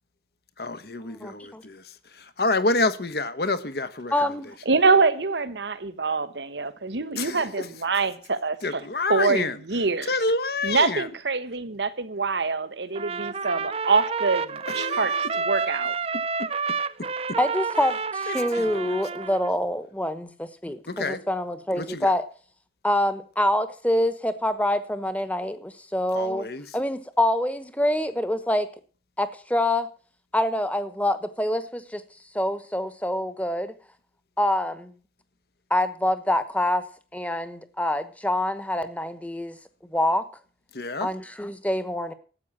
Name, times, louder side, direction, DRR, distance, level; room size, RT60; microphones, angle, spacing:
voice 1, 0.6-1.8 2.4-4.1 7.1-7.6 8.6-9.5 10.1-11.1 14.7-15.0 16.4-16.5 18.3-18.6 20.9-21.2 21.8-22.1 26.1-26.6 40.7-41.1, left 3 dB, 60° left, 1.2 m, -28 dB
voice 2, 1.2-1.6 4.1-4.5 17.4-22.3 22.8-28.7 29.2-29.9 30.3-32.0 32.3-33.7 34.4-34.9 35.7-36.8 37.1-39.6 39.8-40.3 41.0-42.1, left 1 dB, 10° left, 1.1 m, -26 dB
voice 3, 4.7-8.8 9.1-10.2 10.6-15.9, right 4 dB, 75° right, 1.3 m, -25 dB
Trumpet, 13.0-19.5, right 5 dB, 35° right, 0.5 m, -29 dB
13.0 x 8.4 x 7.4 m
head